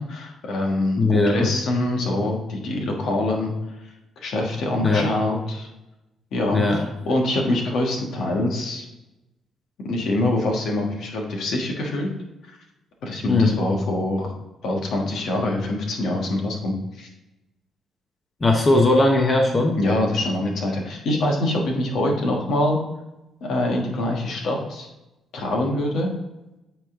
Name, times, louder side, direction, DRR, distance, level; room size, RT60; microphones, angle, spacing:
voice 1, 0.0-3.5 4.2-5.7 6.3-8.8 9.8-12.1 13.0-14.3 14.6-17.1 19.8-22.8 23.4-24.9 25.3-26.1, left 1 dB, 70° left, 0 dB, 1.5 m, -24 dB
voice 2, 1.0-1.5 4.8-5.1 6.5-6.8 13.3-13.6 18.4-19.8, left 2 dB, 30° left, 2 dB, 1.0 m, -18 dB
8.5 x 3.4 x 3.7 m, 0.95 s
supercardioid pair, 70°, 0 cm